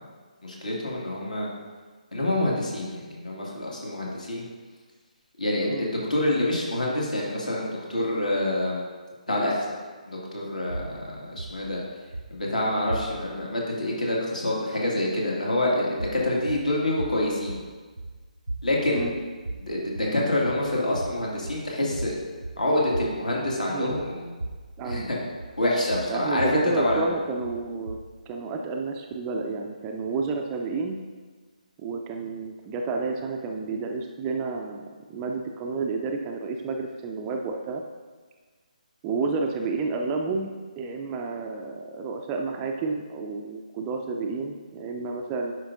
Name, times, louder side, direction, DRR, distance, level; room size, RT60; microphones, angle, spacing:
voice 1, 0.4-1.5 2.1-4.4 5.4-8.8 9.3-9.7 10.1-11.8 12.3-17.6 18.6-19.1 19.5-22.1 22.6-24.3 24.8-25.2 25.6-26.5 26.8-27.1, left 1 dB, 65° left, -3 dB, 2.0 m, -27 dB
sound 1, 10.7-13.5 15.9-28.3, right 2 dB, 85° right, 0.6 m, -38 dB
voice 2, 24.8-25.1 26.1-28.0 28.3-31.0 31.8-37.8 39.0-45.5, right 4 dB, 15° right, 2 dB, 0.3 m, -30 dB
10.0 x 5.0 x 2.6 m, 1.4 s
figure-of-eight pair, 145°, 4 cm